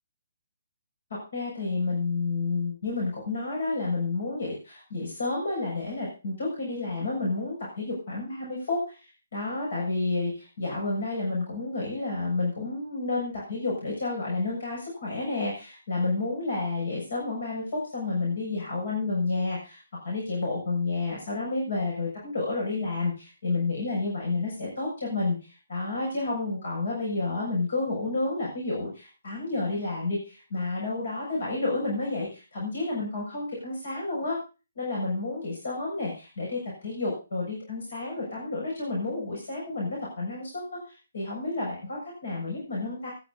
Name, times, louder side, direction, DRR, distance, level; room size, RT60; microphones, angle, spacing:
voice 1, 1.3-34.4 34.8-43.1, left 3 dB, 60° left, -4 dB, 7.2 m, -30 dB
24.5 x 10.5 x 2.8 m, 0.33 s
figure-of-eight pair, 140°, 0 cm